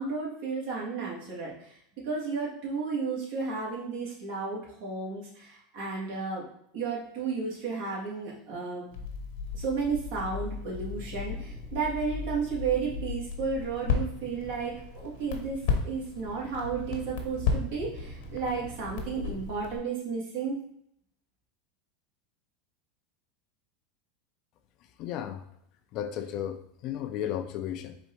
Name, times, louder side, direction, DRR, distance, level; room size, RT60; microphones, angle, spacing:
voice 1, 0.0-6.4 6.7-8.8 9.5-20.6, right 5 dB, 65° right, -4 dB, 1.9 m, -33 dB
Crackle, 8.9-19.8, left 5 dB, 70° left, 1.0 m, -35 dB
Thunder, 9.7-19.5, right 2 dB, 20° right, 1.0 m, -49 dB
voice 2, 25.0-25.5 25.9-28.0, left 10 dB, 50° left, 8 dB, 0.5 m, -34 dB
4.4 x 2.6 x 4.4 m, 0.70 s
supercardioid pair, 115°, 0 cm